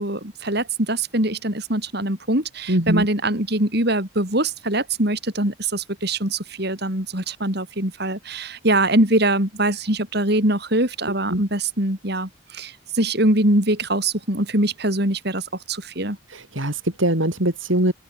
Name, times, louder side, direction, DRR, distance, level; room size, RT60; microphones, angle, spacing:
voice 1, 0.0-16.2, right 1 dB, 50° right, 5.1 m, -23 dB
voice 2, 2.7-3.1 11.3-11.4 16.3-17.9, right 1 dB, 70° right, 5.2 m, -22 dB
head